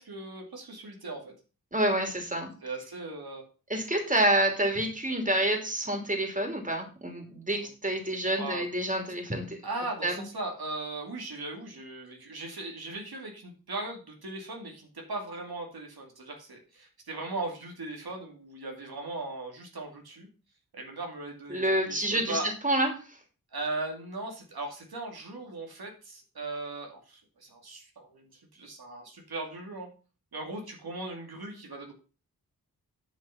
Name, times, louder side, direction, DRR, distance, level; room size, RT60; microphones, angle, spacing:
voice 1, 0.0-1.3 2.6-3.5 8.4-8.6 9.6-20.3 20.7-22.5 23.5-29.9 30.3-31.9, right 2 dB, 85° right, 1 dB, 2.4 m, -38 dB
voice 2, 1.7-2.5 3.7-9.6 10.0-10.1 21.5-23.2, right 1 dB, 20° right, 4 dB, 2.8 m, -28 dB
9.0 x 5.7 x 5.7 m, 0.35 s
wide cardioid pair, 70°, 36 cm